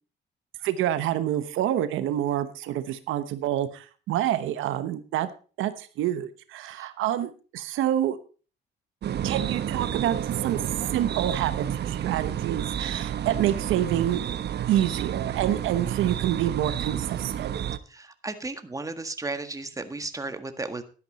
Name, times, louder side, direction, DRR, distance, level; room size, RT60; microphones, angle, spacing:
voice 1, 0.6-5.3 5.6-8.2 9.2-10.2 10.4-10.6 10.9-14.2 14.7-17.5, right 12 dB, 90° right, 12 dB, 1.0 m, -27 dB
sound 1, 9.0-17.8, right 10 dB, 60° right, 0.8 m, -30 dB
voice 2, 17.9-20.8, right 3 dB, 15° right, 8 dB, 1.7 m, -34 dB
12.5 x 10.5 x 4.2 m, 0.37 s
cardioid pair, 90°, 20 cm